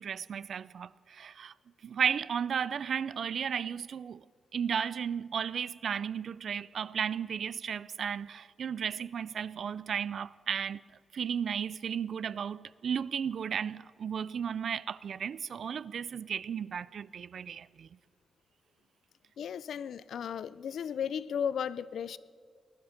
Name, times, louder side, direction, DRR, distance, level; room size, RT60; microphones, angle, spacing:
voice 1, 0.0-1.5 1.8-4.2 4.5-10.8 11.1-17.9, right 7 dB, 60° right, 0.3 m, -34 dB
voice 2, 19.4-22.2, left 8 dB, 80° left, 0.4 m, -35 dB
20.0 x 12.0 x 5.8 m
wide cardioid pair, 155°, 0 cm